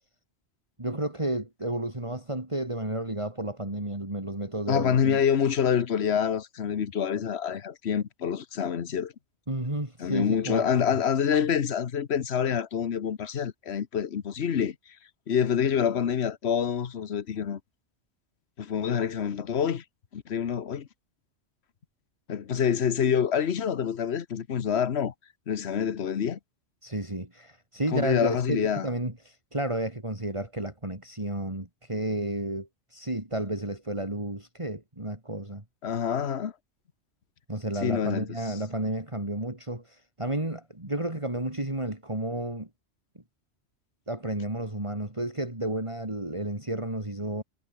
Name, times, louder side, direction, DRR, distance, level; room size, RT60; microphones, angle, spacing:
voice 1, 0.8-5.2 9.5-10.8 26.8-35.6 37.5-42.7 44.1-47.4, right 1 dB, 25° right, 3.8 m, -32 dB
voice 2, 4.7-9.1 10.0-14.7 15.3-17.6 18.6-19.8 20.1-20.9 22.3-25.1 25.5-26.4 27.9-28.9 35.8-36.5 37.8-38.4, left 8 dB, 60° left, 1.3 m, -26 dB
omnidirectional pair, 1.2 m